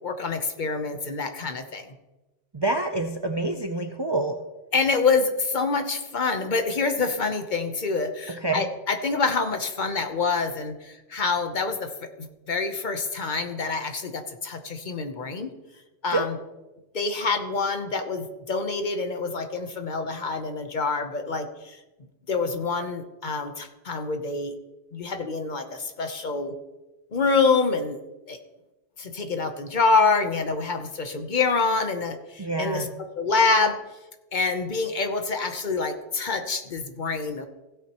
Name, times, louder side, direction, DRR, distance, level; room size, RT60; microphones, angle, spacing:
voice 1, 0.0-1.9 4.7-11.9 12.2-15.5 16.0-16.4 16.9-21.8 22.3-24.5 24.9-26.5 27.1-28.0 28.3-28.4 29.0-32.9 33.2-33.8 34.3-37.5, left 4 dB, 50° left, 7 dB, 1.0 m, -26 dB
voice 2, 2.5-4.4 8.3-8.6 16.1-16.3 32.4-32.9, right 2 dB, 35° right, 5 dB, 0.5 m, -27 dB
16.0 x 8.5 x 3.0 m, 1.1 s
omnidirectional pair, 1.0 m